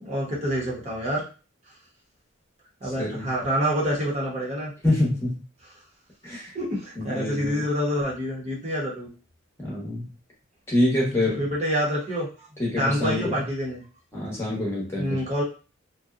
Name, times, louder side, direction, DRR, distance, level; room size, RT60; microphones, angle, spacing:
voice 1, 0.0-1.2 2.8-4.7 6.5-9.1 11.4-12.3 12.8-13.8 15.0-15.4, equal, 35° right, -4 dB, 0.8 m, -27 dB
voice 2, 2.8-3.3 4.8-5.4 6.2-6.5 6.9-7.7 9.6-10.1 10.7-11.5 12.6-13.5 14.1-15.2, left 1 dB, 15° left, -4 dB, 0.9 m, -26 dB
2.7 x 2.1 x 2.4 m, 0.34 s
head